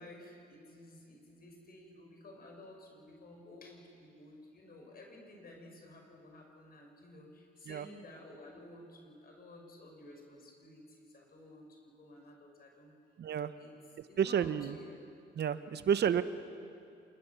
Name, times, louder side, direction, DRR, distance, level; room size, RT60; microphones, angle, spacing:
voice 1, 0.0-12.9 13.5-13.8 14.0-15.0 15.6-15.8, left 1 dB, 50° left, 1 dB, 5.7 m, -53 dB
voice 2, 13.2-13.5 14.2-14.7 15.3-16.2, right 8 dB, 60° right, 12 dB, 1.0 m, -30 dB
27.5 x 21.0 x 7.0 m, 2.5 s
cardioid pair, 90°, 20 cm